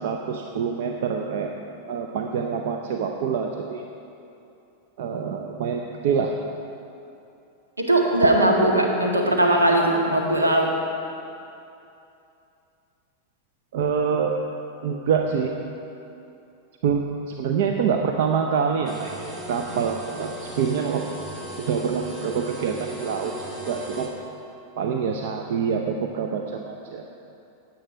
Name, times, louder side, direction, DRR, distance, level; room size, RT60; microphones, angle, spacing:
voice 1, 0.0-1.5 1.9-3.8 5.0-6.3 13.7-14.4 14.8-15.5 16.8-19.1 19.5-21.1 21.7-23.3 23.7-24.1 24.8-27.0, right 6 dB, 55° right, 3 dB, 0.7 m, -26 dB
voice 2, 7.8-10.7, right 1 dB, 75° right, 0 dB, 1.8 m, -19 dB
sound 1, 18.9-24.1, right 2 dB, 30° right, 2.3 m, -36 dB
16.5 x 9.4 x 4.6 m, 2.7 s
figure-of-eight pair, 90°, 0 cm